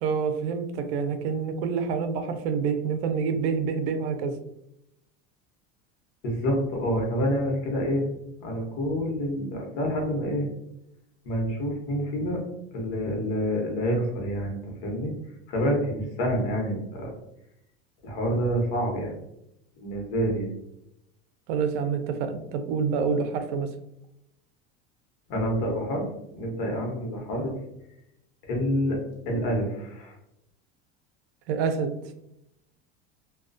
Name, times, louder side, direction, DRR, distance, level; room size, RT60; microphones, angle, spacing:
voice 1, 0.0-4.4 21.5-23.7 31.5-31.9, right 5 dB, 80° right, 8 dB, 0.5 m, -27 dB
voice 2, 6.2-8.0 8.4-10.5 11.2-12.4 12.7-15.1 15.5-17.1 18.0-19.2 19.8-20.5 25.3-26.1 26.3-27.5 28.5-29.0 29.3-30.1, equal, 65° left, 0 dB, 1.0 m, -27 dB
2.3 x 2.3 x 2.4 m, 0.81 s
supercardioid pair, 145°, 30 cm